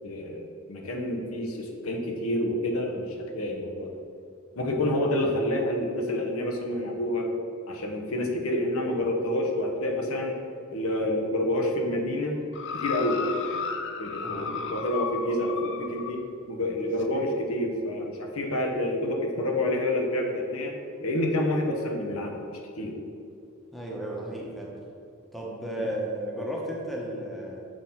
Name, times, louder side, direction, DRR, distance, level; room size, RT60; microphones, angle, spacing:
voice 1, 0.0-3.9 4.5-7.3 7.7-10.4 10.7-12.4 12.7-13.2 14.0-16.2 16.5-20.7 21.0-22.9 25.8-25.9, left 1 dB, 80° left, 1 dB, 1.0 m, -28 dB
sound 1, 12.5-16.2 17.0-17.1, left 5 dB, 55° left, 0.5 m, -33 dB
voice 2, 14.2-14.5 23.7-24.7 25.3-27.7, right 1 dB, ahead, -3 dB, 1.0 m, -34 dB
6.4 x 3.9 x 5.8 m, 2.5 s
head